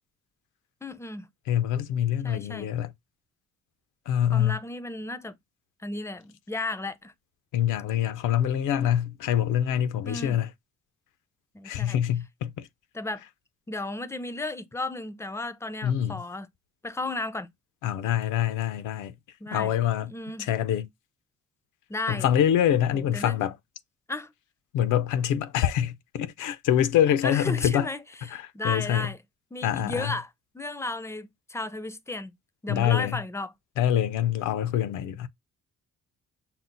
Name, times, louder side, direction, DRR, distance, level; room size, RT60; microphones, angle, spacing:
voice 1, 0.8-1.3 2.2-2.7 4.3-5.4 5.8-7.1 10.0-10.4 11.5-12.0 12.9-13.2 13.7-16.5 16.8-17.5 19.4-19.7 20.0-20.5 21.9-22.3 22.9-23.4 24.1-24.3 27.2-28.0 28.3-29.2 29.5-30.3 30.5-32.3 32.6-33.5, left 2 dB, 10° left, 0.5 m, -34 dB
voice 2, 1.5-2.9 4.1-4.6 7.5-10.5 11.6-12.7 15.8-16.2 17.8-19.1 19.5-20.1 20.4-20.9 22.1-23.6 24.7-27.9 28.3-29.1 29.6-30.1 32.7-33.2 33.8-35.3, left 10 dB, 80° left, 0.6 m, -25 dB
5.8 x 2.0 x 3.8 m
cardioid pair, 90°, 30 cm